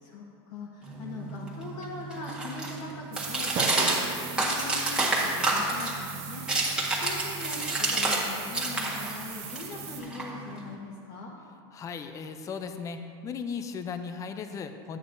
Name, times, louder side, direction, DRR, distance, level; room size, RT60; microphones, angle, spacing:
voice 1, 0.0-11.3, left 3 dB, 55° left, -4 dB, 1.2 m, -41 dB
sound 1, 0.9-8.3 8.5-10.7, right 2 dB, 5° right, 1.5 m, -29 dB
sound 2, 3.1-10.0, right 8 dB, 80° right, 1.6 m, -41 dB
Drum, 3.6-5.8, right 6 dB, 40° right, 0.7 m, -39 dB
voice 2, 11.7-15.0, left 6 dB, 25° left, 8 dB, 0.5 m, -36 dB
11.5 x 9.0 x 2.7 m, 2.6 s
supercardioid pair, 130°, 14 cm